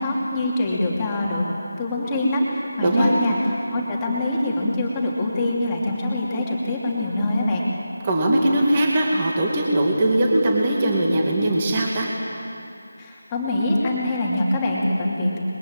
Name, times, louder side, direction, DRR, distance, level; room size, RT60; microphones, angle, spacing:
voice 1, 0.0-1.5 1.8-7.6 13.0-15.4, left 1 dB, 10° left, -4 dB, 2.8 m, -24 dB
voice 2, 8.0-12.1, right 1 dB, 15° right, -1 dB, 2.3 m, -20 dB
29.0 x 22.0 x 8.8 m, 2.6 s
figure-of-eight pair, 175°, 0 cm